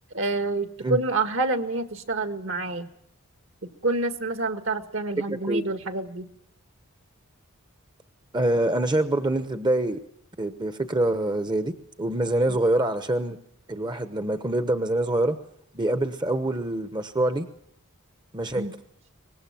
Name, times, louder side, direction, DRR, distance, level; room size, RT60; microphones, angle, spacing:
voice 1, 0.1-2.9 3.6-6.3 18.6-18.7, right 2 dB, 60° right, 9 dB, 1.8 m, -27 dB
voice 2, 5.3-5.6 8.3-10.0 10.4-13.4 13.7-15.4 15.7-17.5 18.3-18.7, right 1 dB, 20° right, 9 dB, 1.0 m, -25 dB
24.5 x 20.0 x 7.5 m, 0.71 s
head